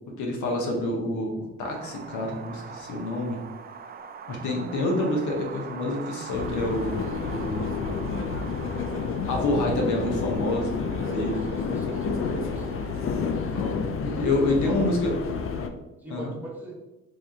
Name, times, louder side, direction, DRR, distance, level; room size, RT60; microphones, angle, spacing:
voice 1, 0.1-3.4 4.3-7.8 9.3-10.7 11.1-11.4 13.5-15.1 16.1-16.3, left 2 dB, 80° left, 0 dB, 0.9 m, -28 dB
Wind, 1.6-15.7, right 6 dB, 30° right, 0.4 m, -43 dB
sound 1, 6.3-15.7, left 5 dB, 45° left, 0.4 m, -30 dB
voice 2, 11.0-12.8 14.1-15.3 16.0-16.7, right 1 dB, 5° right, -4 dB, 1.1 m, -39 dB
3.4 x 2.6 x 3.5 m, 1.0 s
cardioid pair, 90°, 30 cm